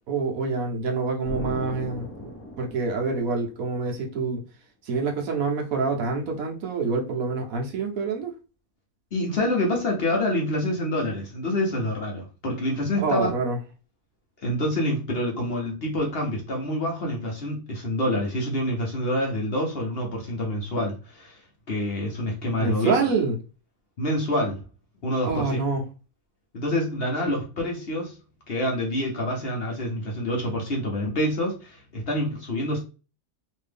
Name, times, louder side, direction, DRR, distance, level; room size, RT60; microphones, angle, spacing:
voice 1, 0.1-2.1 2.6-4.4 4.8-8.3 13.0-13.6 22.6-23.4 25.3-25.8, right 4 dB, 70° right, 1.2 m, -26 dB
Explosion, 1.3-3.9, left 1 dB, 15° left, 0.5 m, -38 dB
voice 2, 9.1-13.3 14.4-21.4 21.7-22.9 24.0-24.6 25.0-25.6 26.5-28.2 28.5-32.8, left 1 dB, 50° left, 0.9 m, -27 dB
3.1 x 2.6 x 3.4 m
omnidirectional pair, 1.6 m